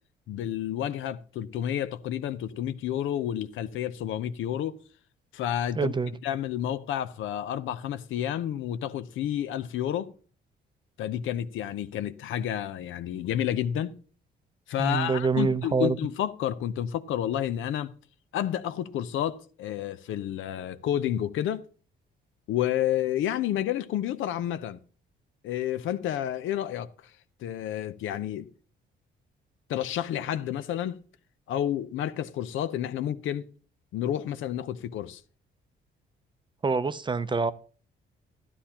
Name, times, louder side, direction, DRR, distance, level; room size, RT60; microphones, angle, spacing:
voice 1, 0.3-4.8 5.3-5.9 6.2-10.1 11.0-14.0 14.7-17.9 18.3-21.7 22.5-24.8 25.4-26.9 27.4-28.5 29.7-31.0 31.5-33.5 33.9-35.2, left 11 dB, 80° left, 0.7 m, -30 dB
voice 2, 5.8-6.1 14.8-16.0 36.6-37.5, right 4 dB, 25° right, 0.5 m, -26 dB
12.5 x 10.0 x 2.9 m
cardioid pair, 90°, 20 cm